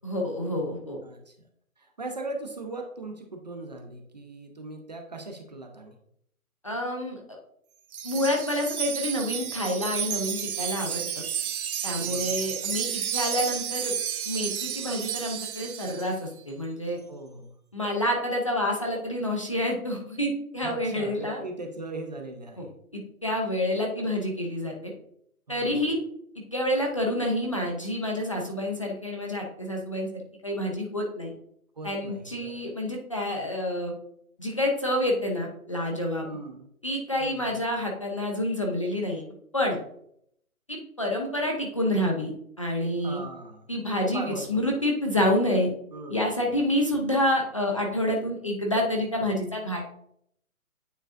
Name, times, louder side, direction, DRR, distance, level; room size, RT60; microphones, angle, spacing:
voice 1, 0.0-1.0 6.6-7.2 8.0-11.0 11.8-13.9 14.3-17.0 17.7-21.4 22.6-22.7 22.9-24.9 25.5-26.0 26.5-30.1 30.4-31.3 31.8-33.9 34.4-36.3 36.8-39.2 39.5-39.8 40.7-42.3 42.6-43.2 43.7-45.7 46.1-49.8, left 1 dB, 25° left, 0 dB, 0.5 m, -28 dB
voice 2, 1.0-1.3 1.8-6.0 12.0-12.5 17.1-17.5 20.6-22.7 25.5-25.8 31.8-32.6 36.2-36.7 37.2-37.6 43.0-43.7 44.0-44.6 45.9-46.3, right 2 dB, 30° right, 3 dB, 0.6 m, -39 dB
Wind chime, 7.9-16.1, right 9 dB, 75° right, 0.7 m, -31 dB
8.9 x 4.6 x 2.5 m, 0.70 s
hypercardioid pair, 160°, 44 cm